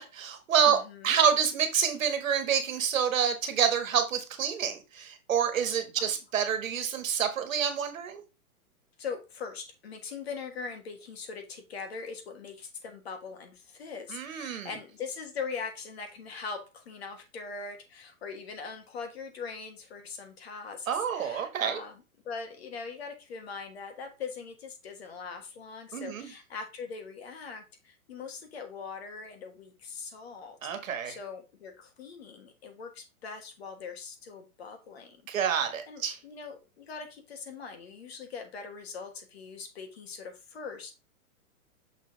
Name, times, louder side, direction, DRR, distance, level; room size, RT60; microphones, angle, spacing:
voice 1, 0.0-0.8 1.0-8.2 14.1-14.7 20.9-21.8 25.9-26.3 30.6-31.2 35.3-36.1, right 8 dB, 60° right, 1.5 m, -28 dB
voice 2, 0.6-1.2 6.0-6.2 9.0-20.9 21.1-35.2 35.7-40.9, left 5 dB, 45° left, 1.3 m, -41 dB
6.4 x 4.1 x 3.8 m
hypercardioid pair, 175°, 44 cm